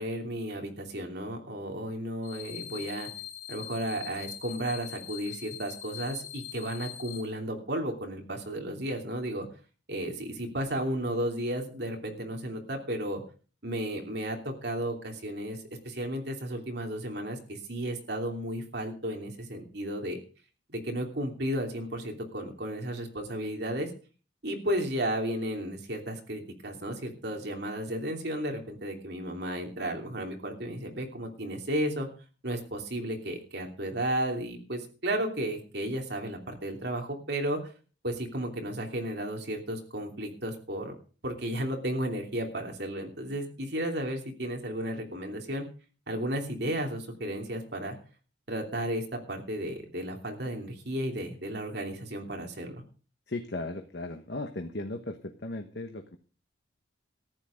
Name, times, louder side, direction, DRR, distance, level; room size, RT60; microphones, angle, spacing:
voice 1, 0.0-3.1 3.5-9.5 9.9-13.2 13.6-20.2 20.7-23.9 24.4-32.1 32.4-37.7 38.0-40.9 41.2-45.7 46.1-48.0 48.5-52.8, right 1 dB, 55° right, 2 dB, 3.0 m, -33 dB
sound 1, 2.2-7.2, left 12 dB, 80° left, 3.0 m, -43 dB
voice 2, 53.3-56.2, left 2 dB, 55° left, 5 dB, 1.3 m, -36 dB
14.5 x 10.5 x 5.2 m, 0.38 s
head